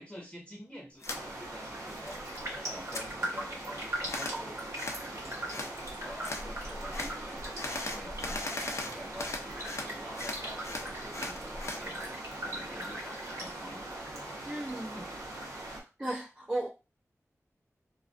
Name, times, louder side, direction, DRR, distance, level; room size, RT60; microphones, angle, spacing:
voice 1, 0.0-2.2 2.6-4.6 5.0-8.4 8.8-14.4 14.9-15.1, equal, 20° left, 0.7 m, -48 dB
sound 1, 1.0-1.2 1.6-2.4 2.7-3.1 4.1-4.4 4.8-5.0 5.5-5.7 6.2-6.5 6.9-7.1 7.6-9.9 10.2-11.8, left 2 dB, 60° left, 0.4 m, -38 dB
sound 2, 1.1-15.8, right 1 dB, 90° right, 0.7 m, -42 dB
Raindrop, 1.6-1.9 2.1-14.2 14.5-15.5 15.9-16.0, right 1 dB, 55° right, 0.9 m, -41 dB
voice 2, 14.5-15.0 16.0-16.7, right 1 dB, 20° right, 0.5 m, -34 dB
2.2 x 2.2 x 2.4 m
wide cardioid pair, 60°, 6 cm